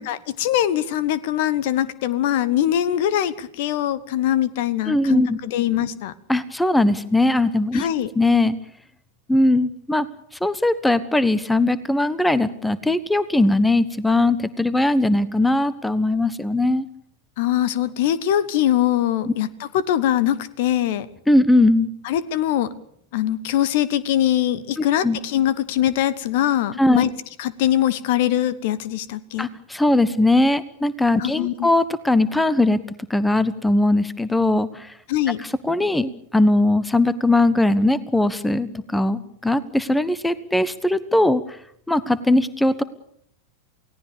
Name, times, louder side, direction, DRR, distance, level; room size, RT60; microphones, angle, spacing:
voice 1, 0.0-6.1 7.7-8.1 17.4-21.1 22.0-22.7 23.1-27.1 27.4-29.5 31.2-31.7 35.1-35.4, left 12 dB, 50° left, 18 dB, 1.2 m, -22 dB
voice 2, 4.9-5.4 6.3-7.9 8.2-8.6 9.3-10.1 10.4-16.8 21.3-21.9 25.0-25.2 26.8-27.1 29.4-32.8 33.1-34.9 35.6-41.4 41.9-42.8, left 2 dB, 5° left, 17 dB, 1.2 m, -19 dB
29.0 x 18.0 x 6.8 m, 0.67 s
figure-of-eight pair, 90°, 0 cm